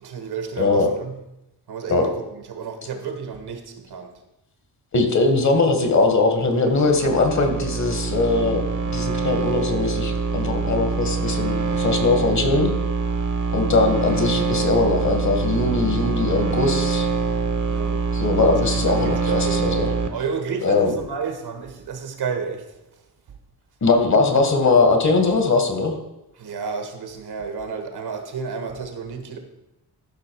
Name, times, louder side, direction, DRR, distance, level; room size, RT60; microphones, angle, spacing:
voice 1, 0.0-1.1 1.7-2.1 2.5-3.6 3.9-4.1 17.7-18.0 18.9-19.6 20.1-22.6 26.4-29.4, right 5 dB, 70° right, 1.7 m, -31 dB
voice 2, 0.6-0.9 1.9-2.1 4.9-12.7 13.5-17.1 18.1-19.9 20.6-20.9 23.8-26.0, left 3 dB, 45° left, 1.7 m, -20 dB
sound 1, 6.7-20.1, right 4 dB, 45° right, 1.2 m, -24 dB
14.0 x 6.2 x 4.7 m
wide cardioid pair, 170°, 40 cm